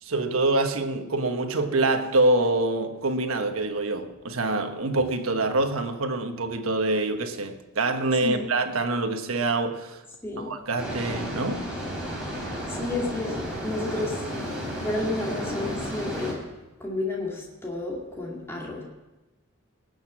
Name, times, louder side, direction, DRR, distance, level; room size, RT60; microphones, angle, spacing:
voice 1, 0.0-10.0 10.4-11.7, right 2 dB, 85° right, 6 dB, 1.3 m, -25 dB
sound 1, 10.8-16.3, equal, 5° right, 4.1 m, -32 dB
voice 2, 12.4-14.2 14.8-16.4 16.8-18.8, left 2 dB, 10° left, -3 dB, 2.3 m, -31 dB
19.0 x 6.6 x 7.4 m, 1.1 s
head